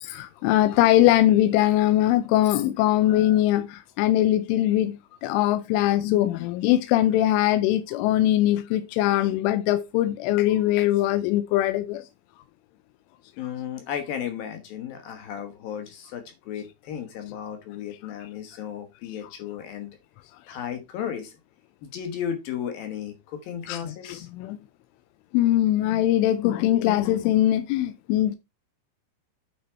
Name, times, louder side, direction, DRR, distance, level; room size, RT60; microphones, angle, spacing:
voice 1, 0.0-12.1 23.7-24.6 25.3-28.4, left 13 dB, 90° left, 3.2 m, -22 dB
voice 2, 13.4-20.0 20.5-21.3 21.8-24.3, left 9 dB, 70° left, 2.4 m, -34 dB
9.3 x 4.9 x 4.4 m
omnidirectional pair, 5.5 m